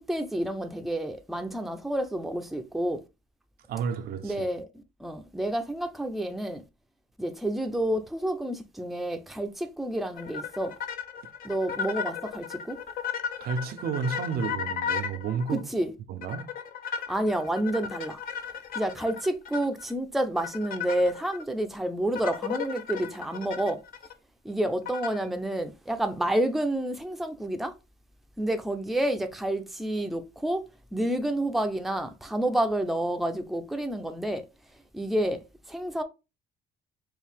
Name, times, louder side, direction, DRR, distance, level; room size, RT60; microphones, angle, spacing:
voice 1, 0.0-3.0 4.2-4.7 5.0-6.6 7.2-10.7 11.4-12.8 15.7-15.9 17.1-18.2 18.7-23.8 24.4-27.7 28.4-34.5 34.9-35.4 35.7-36.0, right 1 dB, ahead, 0.6 m, -29 dB
voice 2, 3.7-4.5 13.4-15.7 16.1-16.5, right 5 dB, 65° right, 0.6 m, -31 dB
sound 1, 10.2-15.6 16.2-19.9 20.4-21.4 22.2-24.1 24.9-25.3, left 7 dB, 60° left, 0.7 m, -35 dB
4.6 x 2.5 x 3.5 m
cardioid pair, 110°, 17 cm